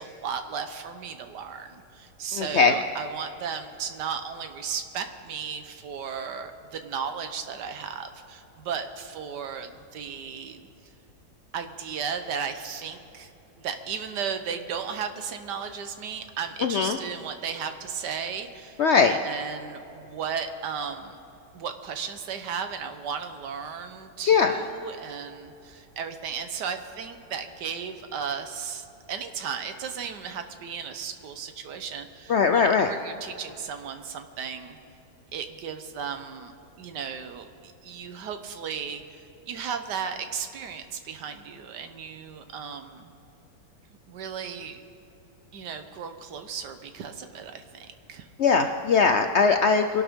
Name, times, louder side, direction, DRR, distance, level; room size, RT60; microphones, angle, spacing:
voice 1, 0.0-10.6 11.5-13.3 13.6-18.8 19.1-21.2 21.5-34.8 35.3-36.5 36.8-43.1 44.1-44.8 45.5-48.3, right 6 dB, 85° right, 8 dB, 1.6 m, -35 dB
voice 2, 2.3-2.7 16.6-17.0 18.8-19.1 24.2-24.5 32.3-32.9 48.4-50.0, left 5 dB, 65° left, 6 dB, 0.6 m, -20 dB
24.0 x 12.0 x 3.7 m, 2.9 s
omnidirectional pair, 1.8 m